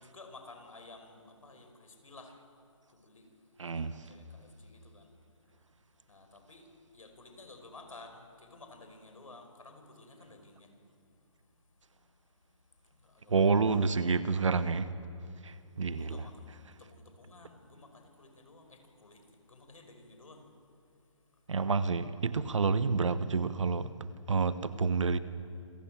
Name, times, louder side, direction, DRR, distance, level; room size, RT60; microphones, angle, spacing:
voice 1, 0.0-13.4 15.9-20.5 20.8-21.5, left 2 dB, 85° left, 5.2 m, -55 dB
voice 2, 3.6-3.9 13.3-14.9 15.4-16.2 21.5-23.9 24.3-25.2, right 4 dB, 65° right, 1.2 m, -28 dB
26.5 x 17.0 x 7.6 m
hypercardioid pair, 175°, 17 cm